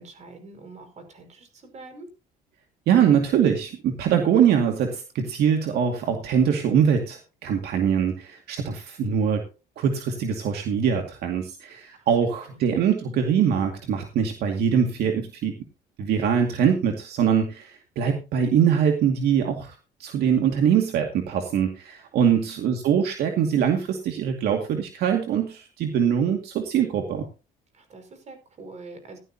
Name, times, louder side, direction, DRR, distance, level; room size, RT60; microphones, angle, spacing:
voice 1, 0.0-2.1 12.0-12.1 12.5-12.6 22.2-22.5 27.7-29.2, right 3 dB, 45° right, 6 dB, 5.5 m, -45 dB
voice 2, 2.9-9.5 9.8-15.6 16.0-27.3, right 8 dB, 70° right, 3 dB, 2.3 m, -23 dB
16.5 x 12.0 x 2.8 m, 0.32 s
cardioid pair, 110°, 17 cm